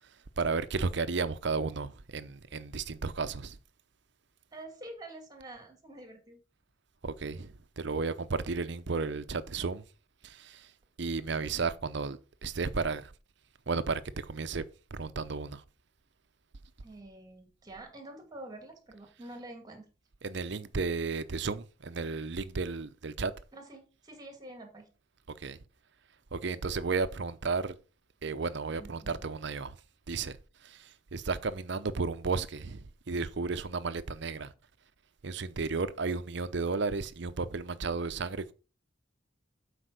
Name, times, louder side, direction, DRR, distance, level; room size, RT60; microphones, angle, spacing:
voice 1, 0.0-3.6 7.0-9.8 10.2-10.7 11.0-13.1 13.7-14.7 14.9-15.6 20.2-23.3 25.3-25.6 26.3-27.8 28.2-29.8 30.1-34.5 35.2-38.5, right 4 dB, 60° right, 0.7 m, -33 dB
voice 2, 4.5-6.4 16.8-19.9 23.5-24.9 28.8-29.2, right 1 dB, 20° right, 2.2 m, -47 dB
8.0 x 4.9 x 6.4 m
head